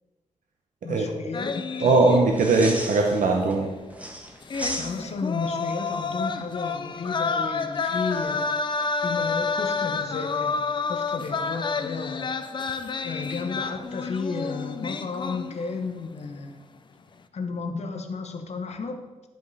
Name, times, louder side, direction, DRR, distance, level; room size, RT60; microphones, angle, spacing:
voice 1, 0.8-2.1 4.8-8.5 9.0-12.3 13.0-16.6 17.3-19.0, left 4 dB, 60° left, 6 dB, 0.9 m, -33 dB
sound 1, 1.3-2.7 3.0-3.1 4.4-15.9 16.2-16.5, left 4 dB, 35° left, 0.4 m, -29 dB
voice 2, 1.8-3.7, right 3 dB, 85° right, 1 dB, 0.8 m, -20 dB
sound 2, 2.3-3.5 3.9-5.3 7.8-8.2, right 1 dB, 10° right, 0.8 m, -36 dB
11.5 x 5.1 x 4.1 m, 1.2 s
wide cardioid pair, 150°, 13 cm